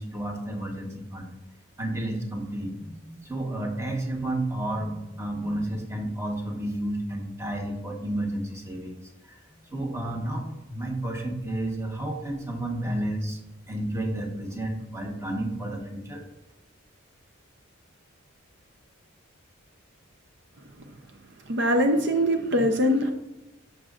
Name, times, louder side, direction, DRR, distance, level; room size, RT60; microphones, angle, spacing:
voice 1, 0.0-1.3 1.8-13.4 13.7-16.3, right 1 dB, 15° right, 1 dB, 1.1 m, -31 dB
voice 2, 21.5-23.1, equal, 55° right, 5 dB, 0.6 m, -22 dB
11.0 x 6.2 x 2.5 m, 0.97 s
head